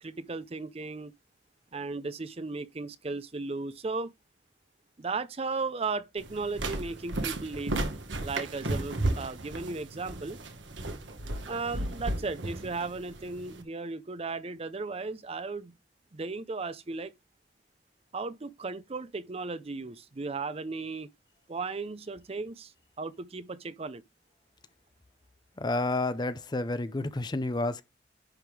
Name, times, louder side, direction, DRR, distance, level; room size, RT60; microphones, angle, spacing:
voice 1, 0.0-1.1 1.7-4.1 5.0-7.9 8.2-10.4 11.5-15.8 16.1-17.1 18.1-21.1 21.5-22.7 23.0-24.0, right 3 dB, 35° right, 0.5 m, -36 dB
sound 1, 6.2-13.6, right 2 dB, 80° right, 1.3 m, -34 dB
voice 2, 25.6-27.8, left 2 dB, 25° left, 0.5 m, -30 dB
10.5 x 3.6 x 4.8 m
head